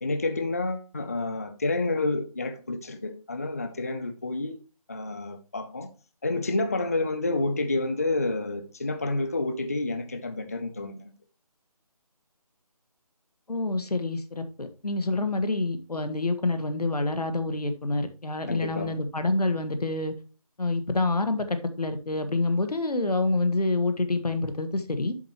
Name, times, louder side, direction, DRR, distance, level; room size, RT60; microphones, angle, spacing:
voice 1, 0.0-4.6 4.9-5.9 6.2-11.1 18.5-19.0, left 2 dB, 25° left, 0.4 m, -29 dB
voice 2, 13.5-20.1 20.6-25.1, left 2 dB, 90° left, 1.6 m, -27 dB
7.9 x 7.2 x 3.0 m
figure-of-eight pair, 165°, 19 cm